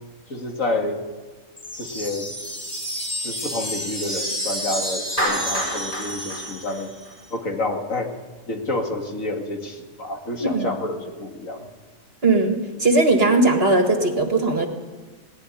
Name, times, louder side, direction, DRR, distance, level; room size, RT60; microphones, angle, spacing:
voice 1, 0.3-1.1 1.8-2.3 3.2-6.9 7.3-8.1 8.5-11.7, left 2 dB, 60° left, 3 dB, 2.5 m, -29 dB
sound 1, 1.6-7.0, equal, 15° left, 4.9 m, -30 dB
Clapping, 5.2-7.5, right 1 dB, 35° left, 5.6 m, -28 dB
voice 2, 12.2-14.7, right 2 dB, 40° right, 5 dB, 2.0 m, -19 dB
19.5 x 15.0 x 9.9 m, 1.3 s
omnidirectional pair, 1.6 m